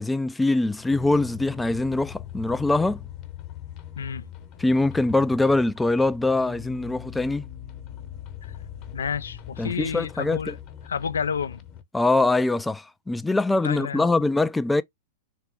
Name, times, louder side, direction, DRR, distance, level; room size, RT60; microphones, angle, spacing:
voice 1, 0.0-3.0 4.6-7.4 9.6-10.5 11.9-14.8, left 2 dB, 10° left, 0.3 m, -23 dB
sound 1, 0.7-11.8, left 11 dB, 40° left, 0.9 m, -41 dB
voice 2, 4.0-4.3 8.4-8.5 8.9-10.6 10.9-11.6 13.6-14.1, left 6 dB, 80° left, 0.3 m, -30 dB
3.6 x 3.3 x 3.2 m
hypercardioid pair, 100°, 0 cm